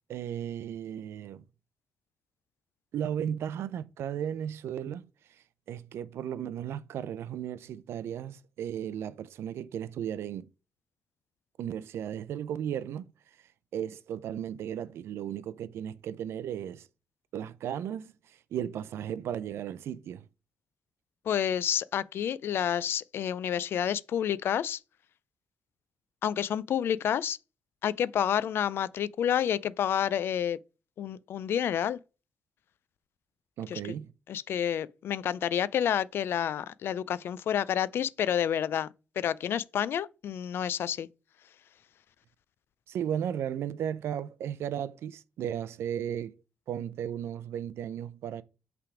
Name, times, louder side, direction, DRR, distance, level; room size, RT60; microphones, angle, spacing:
voice 1, 0.1-1.4 2.9-5.1 5.7-10.5 11.6-13.1 13.7-16.9 17.3-20.3 33.6-34.1 42.9-46.4 46.7-48.4, right 9 dB, 80° right, 0.5 m, -35 dB
voice 2, 21.3-24.8 26.2-27.4 27.8-30.6 31.0-32.0 33.7-33.8 34.3-41.1, left 9 dB, 65° left, 0.3 m, -29 dB
5.8 x 3.4 x 4.8 m
cardioid pair, 140°, 4 cm